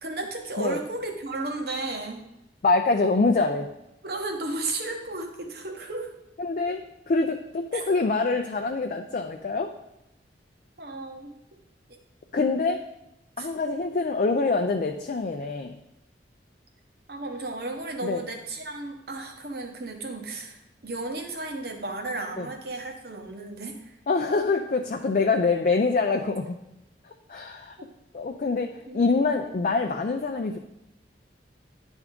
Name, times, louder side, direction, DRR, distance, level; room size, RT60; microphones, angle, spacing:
voice 1, 0.0-2.2 4.0-6.1 7.7-7.9 10.8-11.3 13.4-13.5 17.1-23.9 28.9-29.0 29.3-29.5, right 2 dB, 55° right, 3 dB, 1.0 m, -34 dB
voice 2, 2.6-3.7 6.4-9.7 12.3-12.8 13.4-15.8 18.0-18.2 22.4-22.5 24.1-26.6 27.3-27.8 28.1-30.6, left 3 dB, 45° left, 4 dB, 0.4 m, -25 dB
10.0 x 3.5 x 3.6 m, 0.87 s
head